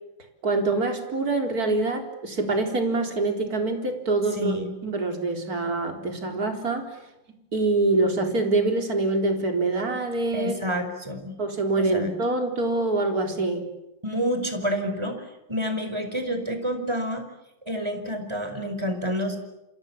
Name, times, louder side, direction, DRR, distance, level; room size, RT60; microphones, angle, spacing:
voice 1, 0.4-4.6 4.8-6.9 7.5-10.5 11.4-13.7, right 2 dB, 25° right, 3 dB, 4.3 m, -25 dB
voice 2, 4.4-4.7 10.3-11.4 11.8-12.1 14.0-15.2 15.5-17.2 17.6-19.4, equal, 10° right, 7 dB, 4.8 m, -28 dB
28.5 x 28.5 x 7.2 m, 0.94 s
omnidirectional pair, 3.8 m